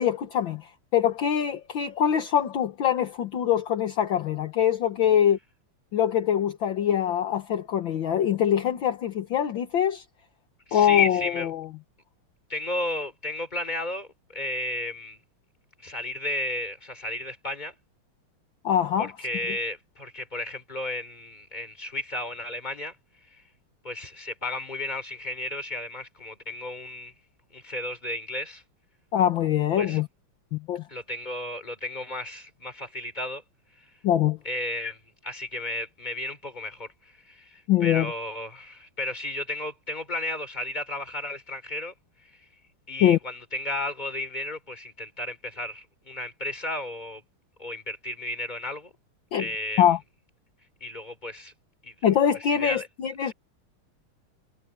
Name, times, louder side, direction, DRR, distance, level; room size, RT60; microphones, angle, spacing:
voice 1, 0.0-5.4 5.9-10.0 10.7-11.2 11.5-11.7 18.6-19.1 29.1-30.1 30.5-30.8 34.0-34.4 37.7-38.1 43.0-43.2 49.3-49.5 49.8-50.0 52.0-53.3, left 9 dB, 65° left, 1.9 m, -23 dB
voice 2, 10.7-11.5 12.5-15.2 15.8-17.7 19.0-23.0 23.8-27.1 27.5-28.6 29.8-30.0 30.9-33.4 34.4-41.9 42.9-47.2 47.6-48.9 49.4-49.9 50.8-51.5 51.8-51.9 52.3-52.9 53.2-53.3, left 2 dB, 20° left, 4.1 m, -33 dB
omnidirectional pair, 2.4 m